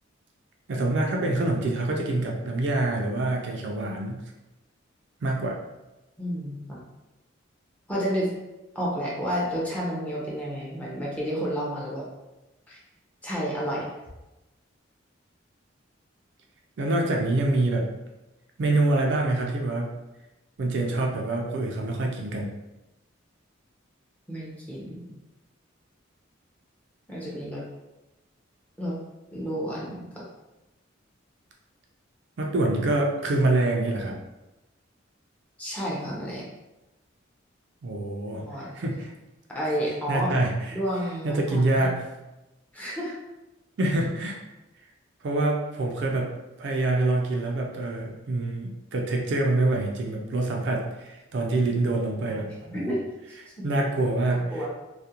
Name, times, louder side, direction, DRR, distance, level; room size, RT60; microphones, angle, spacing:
voice 1, 0.7-4.2 5.2-5.6 16.8-17.9 18.6-19.9 20.6-22.5 32.4-34.2 37.8-39.1 40.1-40.8 41.2-42.1 43.8-44.4 45.2-46.3 46.6-52.9 53.4-54.7, right 2 dB, 60° right, 0 dB, 0.4 m, -26 dB
voice 2, 6.2-6.8 7.9-8.3 8.7-12.1 12.7-12.8 13.2-13.9 24.3-25.1 27.1-27.6 28.8-28.9 29.3-30.0 35.6-36.4 38.4-38.7 39.5-40.4 40.7-41.9 42.7-43.1 52.3-53.6 54.3-54.7, equal, 5° left, -6 dB, 0.6 m, -31 dB
2.4 x 2.1 x 2.8 m, 1.0 s
head